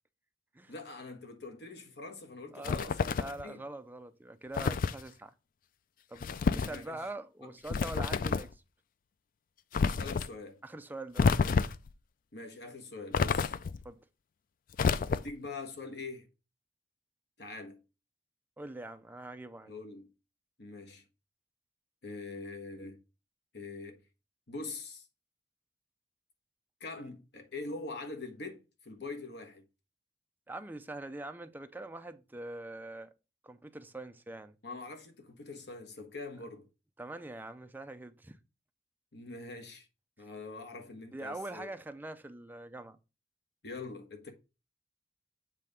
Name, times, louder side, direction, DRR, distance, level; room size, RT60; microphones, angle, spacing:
voice 1, 0.7-3.6 6.4-7.1 7.4-7.5 9.8-10.6 12.3-13.6 15.0-16.3 17.4-17.8 19.7-20.1 20.6-21.0 22.0-23.0 23.5-24.0 24.5-25.1 26.8-29.6 34.6-36.7 39.1-39.9 40.2-41.7 43.6-44.3, left 3 dB, 65° left, 1.3 m, -44 dB
voice 2, 2.5-5.3 6.1-8.6 10.6-11.4 13.8-14.0 18.6-19.7 27.0-27.1 30.5-33.1 33.4-34.6 37.0-38.4 41.1-43.0, right 2 dB, 10° right, 0.5 m, -43 dB
sound 1, 2.6-3.4 4.6-5.0 6.2-6.8 7.7-8.5 9.7-10.3 11.2-11.9 13.1-13.8 14.7-15.5, left 5 dB, 50° left, 0.4 m, -29 dB
7.6 x 3.3 x 5.0 m
head